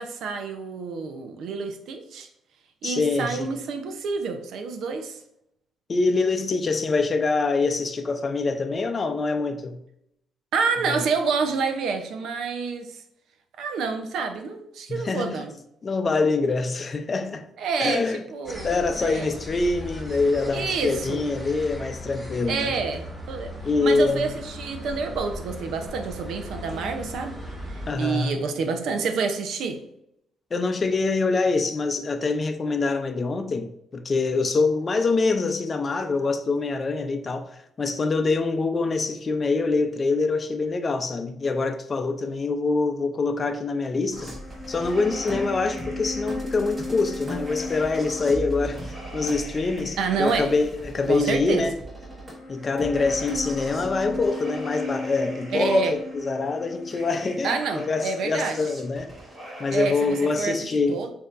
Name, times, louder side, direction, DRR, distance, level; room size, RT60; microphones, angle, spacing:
voice 1, 0.0-2.3 2.8-5.2 10.5-13.0 13.6-15.5 17.6-18.0 18.3-19.3 20.5-21.2 22.5-23.5 23.8-27.3 27.7-29.8 50.0-50.5 51.1-51.7 55.5-56.0 57.4-58.6 59.7-60.6 60.9-61.1, right 5 dB, 75° right, 0.6 m, -28 dB
voice 2, 2.8-3.5 5.9-9.8 10.8-11.0 14.9-15.4 15.8-17.5 17.8-18.2 18.6-22.7 23.6-24.3 27.9-28.4 30.5-44.3 44.7-51.7 52.5-59.1 59.6-61.0, left 3 dB, 35° left, 0.5 m, -25 dB
sound 1, 18.4-27.9, left 1 dB, ahead, 1.7 m, -38 dB
sound 2, 44.1-60.6, left 1 dB, 25° right, 1.5 m, -36 dB
6.3 x 2.8 x 2.5 m
cardioid pair, 90°, 0 cm